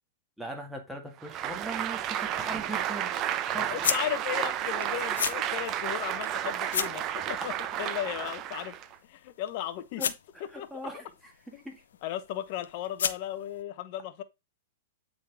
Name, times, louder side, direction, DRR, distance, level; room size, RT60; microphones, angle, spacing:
voice 1, 0.4-3.2 3.5-3.9 10.0-10.1 10.5-11.3 11.6-11.8, right 1 dB, ahead, 1.8 m, -39 dB
Applause, 1.2-9.0, right 11 dB, 35° right, 0.6 m, -32 dB
sound 1, 2.0-13.6, left 8 dB, 85° left, 0.6 m, -38 dB
voice 2, 3.7-7.5 7.8-8.8 9.1-10.0 10.5-10.7 11.5-11.6 12.0-14.2, left 12 dB, 50° left, 0.9 m, -35 dB
8.4 x 3.9 x 3.4 m
hypercardioid pair, 125°, 0 cm